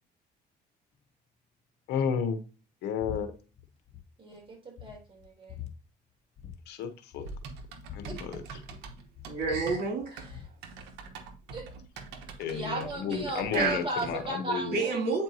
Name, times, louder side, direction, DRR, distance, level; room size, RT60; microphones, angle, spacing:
voice 1, 1.9-2.4 2.8-3.3 6.7-7.3 7.9-8.3 12.4-14.8, left 7 dB, 80° left, 9 dB, 0.9 m, -32 dB
sound 1, 3.0-3.2 3.5-4.0 4.4-4.5 4.8-5.7 6.4-6.6 6.8-6.9 7.1-8.8 9.1-10.5, left 11 dB, 45° left, 1.0 m, -44 dB
voice 2, 4.2-5.6 11.5-11.6 12.5-15.1, right 2 dB, 30° right, 0 dB, 2.9 m, -35 dB
Typing, 7.2-14.3, right 4 dB, 90° right, 1.0 m, -44 dB
voice 3, 9.3-10.4 13.5-13.8 14.7-15.2, right 3 dB, 70° right, 2 dB, 2.6 m, -29 dB
8.2 x 4.5 x 2.7 m, 0.34 s
cardioid pair, 110°, 17 cm